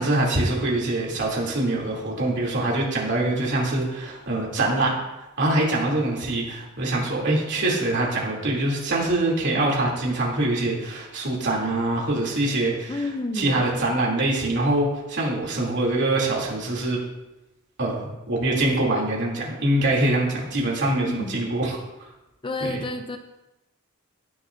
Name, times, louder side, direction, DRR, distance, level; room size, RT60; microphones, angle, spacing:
voice 1, 0.0-4.9 5.4-13.1 13.3-17.0 17.8-21.8 22.6-22.8, right 2 dB, 55° right, -3 dB, 3.1 m, -24 dB
voice 2, 12.9-13.6 21.0-21.4 22.4-23.2, left 2 dB, 25° left, 7 dB, 0.5 m, -30 dB
18.0 x 7.0 x 2.7 m, 0.98 s
head